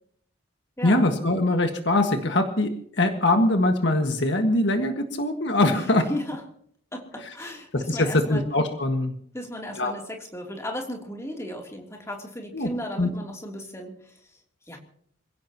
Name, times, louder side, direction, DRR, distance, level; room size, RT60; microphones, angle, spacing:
voice 1, 0.8-2.7 3.0-6.0 7.7-9.1 9.8-9.9 12.5-12.7 13.0-13.1, left 2 dB, 60° left, 5 dB, 1.7 m, -22 dB
voice 2, 5.7-6.4 6.9-8.4 9.3-14.1 14.7-14.8, left 1 dB, 15° left, 1 dB, 3.1 m, -35 dB
27.0 x 16.5 x 3.0 m, 0.63 s
head